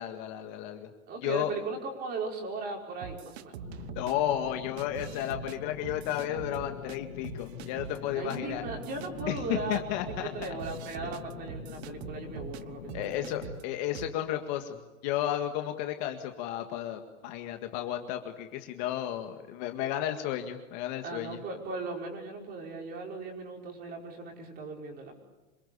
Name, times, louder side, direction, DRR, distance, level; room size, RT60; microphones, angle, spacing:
voice 1, 0.0-0.9 1.2-1.5 4.0-8.6 9.3-9.4 9.7-10.3 12.9-14.8 15.0-21.4, left 11 dB, 35° left, 5 dB, 1.9 m, -33 dB
voice 2, 1.1-3.6 8.1-13.3 21.0-25.2, right 3 dB, 20° right, 2 dB, 5.1 m, -38 dB
sound 1, 3.0-4.1 4.8-5.6 5.8-7.0 7.2-8.0 8.3-8.4 8.6-12.6 12.9-13.6 13.9-14.2, right 9 dB, 50° right, 1.2 m, -43 dB
sound 2, 3.6-13.5, left 8 dB, 70° left, 4.2 m, -44 dB
27.5 x 20.5 x 8.5 m, 1.1 s
supercardioid pair, 165°, 40 cm